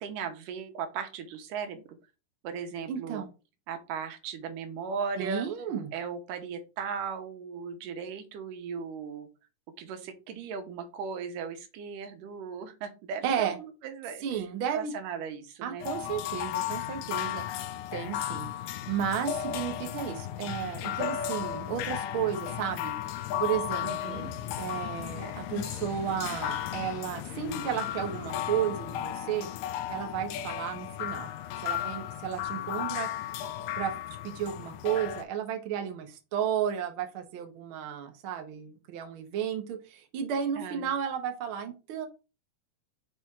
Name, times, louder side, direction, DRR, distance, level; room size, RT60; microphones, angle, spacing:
voice 1, 0.0-1.8 2.4-3.2 3.7-5.5 5.9-9.3 9.8-14.2 14.7-15.9 23.8-24.3 40.6-40.9, right 6 dB, 85° right, 6 dB, 2.6 m, -37 dB
voice 2, 2.9-3.3 5.2-5.9 13.2-13.6 14.2-14.9 15.6-17.4 17.9-18.5 18.9-22.9 23.4-29.5 29.9-31.3 31.6-33.1 33.8-33.9 34.2-42.1, right 9 dB, 65° right, 5 dB, 1.4 m, -33 dB
sound 1, 15.8-35.2, left 11 dB, 85° left, 2.2 m, -35 dB
6.2 x 4.3 x 3.6 m, 0.30 s
omnidirectional pair, 3.7 m